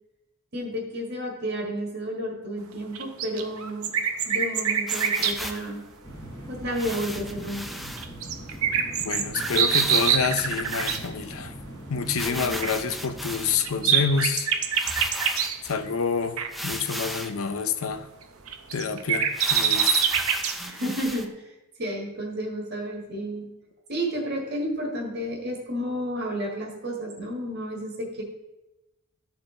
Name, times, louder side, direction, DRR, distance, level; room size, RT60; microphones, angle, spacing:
voice 1, 0.5-3.9 4.2-5.8 6.5-7.7 12.2-12.6 20.6-23.5 23.9-28.2, equal, 50° right, -1 dB, 1.6 m, -31 dB
sound 1, 2.9-5.4 8.0-11.0 12.6-12.7 13.3-15.6 16.4-16.5 18.2-20.6, right 7 dB, 80° right, 0.8 m, -25 dB
sound 2, 4.9-5.7 6.7-8.1 8.5-8.6 8.8-8.9 9.4-11.4 12.1-13.8 14.4-14.5 14.7-15.8 16.5-17.4 17.9-18.0 18.4-18.5 19.3-21.3, equal, ahead, 0.4 m, -36 dB
sound 3, 6.0-14.2, right 1 dB, 15° left, 1.2 m, -41 dB
voice 2, 9.0-11.5 11.9-14.5 15.6-18.1 18.7-20.1, left 5 dB, 75° left, 9 dB, 0.6 m, -28 dB
13.0 x 4.5 x 3.8 m, 0.99 s
head